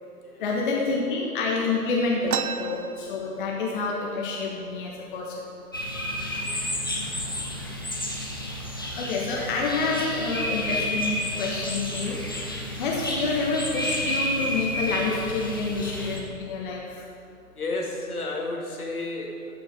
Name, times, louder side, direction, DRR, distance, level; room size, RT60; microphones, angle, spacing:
voice 1, 0.4-5.4 9.0-12.2 12.8-17.0, left 3 dB, 35° left, -3 dB, 1.3 m, -28 dB
sound 1, 2.3-3.9 4.2-4.3 4.6-5.2 5.8-6.0 6.7-6.8 7.3-7.8, right 8 dB, 70° right, 0.5 m, -33 dB
sound 2, 5.7-16.2, equal, 15° left, 0.4 m, -31 dB
voice 2, 6.3-6.8 17.5-19.5, left 2 dB, 70° left, -1 dB, 2.3 m, -32 dB
13.5 x 6.1 x 5.1 m, 2.5 s
figure-of-eight pair, 130°, 46 cm